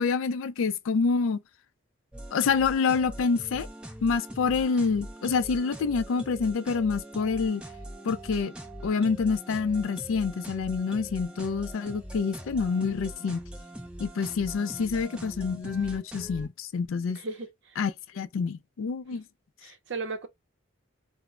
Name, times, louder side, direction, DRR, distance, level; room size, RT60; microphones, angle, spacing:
voice 1, 0.0-1.4 2.3-3.7 4.0-7.6 8.0-8.5 8.8-13.4 14.0-17.2 17.8-19.2, left 5 dB, 80° left, 0.3 m, -27 dB
sound 1, 2.1-16.5, right 1 dB, 5° right, 0.4 m, -42 dB
voice 2, 17.2-17.5 19.6-20.3, right 3 dB, 60° right, 0.6 m, -35 dB
2.1 x 2.0 x 3.5 m
head